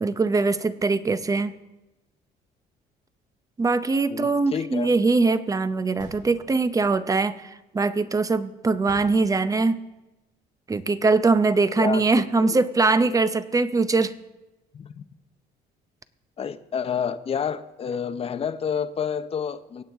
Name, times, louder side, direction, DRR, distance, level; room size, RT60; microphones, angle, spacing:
voice 1, 0.0-1.5 3.6-9.8 10.7-14.1, right 3 dB, 20° right, 13 dB, 0.7 m, -22 dB
voice 2, 4.1-4.9 11.8-12.0 12.4-12.6 14.7-15.0 16.4-19.8, left 7 dB, 35° left, 11 dB, 0.7 m, -29 dB
sound 1, 6.0-6.9 8.9-9.8, right 1 dB, 50° right, 5.1 m, -47 dB
24.0 x 8.6 x 3.5 m, 1.0 s
cardioid pair, 110°, 17 cm